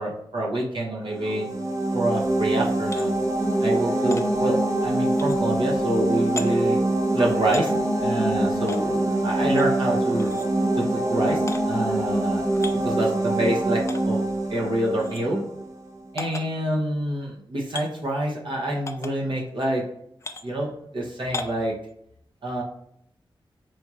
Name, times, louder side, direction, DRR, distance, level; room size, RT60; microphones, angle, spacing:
voice 1, 0.0-1.5 1.9-3.2 3.6-6.8 7.1-7.7 8.0-10.3 10.8-12.4 12.8-14.2 14.5-15.4 16.1-19.8 20.4-21.8 22.4-22.6, right 1 dB, 65° right, -2 dB, 0.9 m, -26 dB
sound 1, 1.1-15.8, right 1 dB, 35° right, 0.6 m, -24 dB
sound 2, 2.8-3.1 4.1-4.2 5.1-5.4 6.4-6.5 7.5-7.7 8.7-8.8 9.5-9.7 10.2-10.5 11.5-11.6 12.5-12.8 13.9-14.0 15.0-15.2 16.2-16.4 17.7-17.9 18.9-19.1 20.2-20.4 21.3-21.6, left 3 dB, 30° left, 0.4 m, -35 dB
4.3 x 2.4 x 2.9 m, 0.71 s
wide cardioid pair, 100°, 9 cm